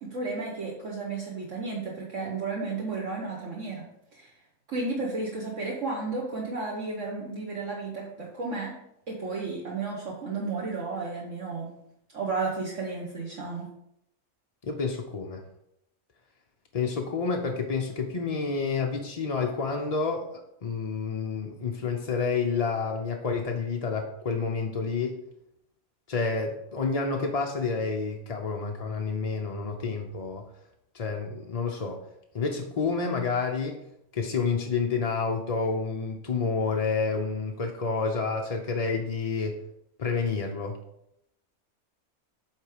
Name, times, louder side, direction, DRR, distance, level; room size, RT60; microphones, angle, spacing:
voice 1, 0.0-3.8 4.1-4.3 4.7-8.7 9.1-11.7 12.1-13.7, right 3 dB, 60° right, -2 dB, 1.4 m, -33 dB
voice 2, 14.6-15.4 16.7-20.2 20.6-25.2 26.1-30.4 30.9-32.0 32.3-33.8 34.1-39.6 40.0-40.8, left 4 dB, 45° left, 1 dB, 0.4 m, -29 dB
8.7 x 3.7 x 4.9 m, 0.79 s
omnidirectional pair, 1.6 m